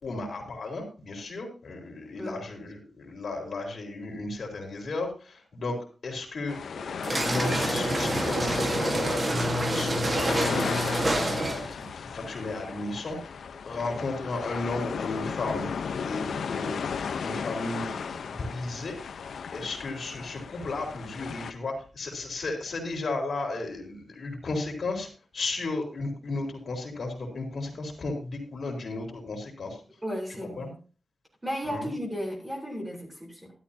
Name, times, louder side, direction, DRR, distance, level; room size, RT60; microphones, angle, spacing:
voice 1, 0.0-5.8 6.0-13.2 13.7-19.0 19.5-25.1 25.3-29.8 30.6-30.7 31.7-31.9, left 2 dB, 55° left, 2 dB, 4.1 m, -34 dB
voice 2, 2.1-2.4 30.0-30.8 31.4-33.5, equal, 15° right, -1 dB, 4.0 m, -34 dB
sound 1, 6.5-21.5, left 6 dB, 90° left, 0.9 m, -34 dB
sound 2, 7.0-11.8, right 1 dB, 30° right, 1.6 m, -27 dB
13.0 x 12.5 x 2.9 m, 0.36 s
wide cardioid pair, 175°, 0 cm